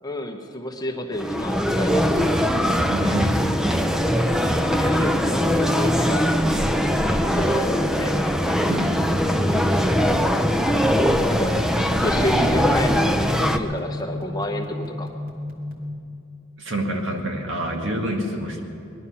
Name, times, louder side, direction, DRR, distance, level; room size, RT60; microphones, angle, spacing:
voice 1, 0.0-2.1 4.8-6.4 7.0-8.1 11.2-15.1, left 1 dB, 20° left, 3 dB, 1.0 m, -29 dB
zuidplein-shoppingcentre, 1.1-13.6, equal, 5° right, 0.5 m, -21 dB
voice 2, 2.9-3.4 8.7-9.1 9.5-10.3 16.6-18.6, right 1 dB, 65° right, 1 dB, 2.0 m, -28 dB
sound 1, 9.1-15.9, equal, 45° right, 2.2 m, -33 dB
20.5 x 12.0 x 5.7 m, 2.6 s
head